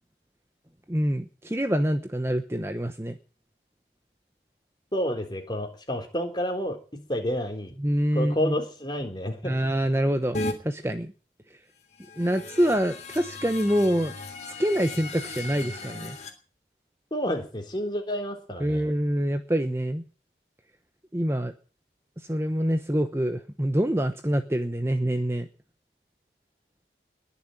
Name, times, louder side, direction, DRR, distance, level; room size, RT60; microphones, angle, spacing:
voice 1, 0.9-3.2 7.8-8.5 9.4-11.1 12.2-14.1 14.6-16.2 18.6-20.0 21.1-21.5 22.2-25.5, equal, 15° right, 8 dB, 1.0 m, -26 dB
voice 2, 4.9-7.7 8.1-9.6 17.1-18.8, equal, 25° left, 4 dB, 3.7 m, -30 dB
sound 1, 10.3-10.5 11.9-16.3, left 2 dB, 40° left, 3.2 m, -36 dB
21.0 x 7.2 x 9.1 m, 0.38 s
head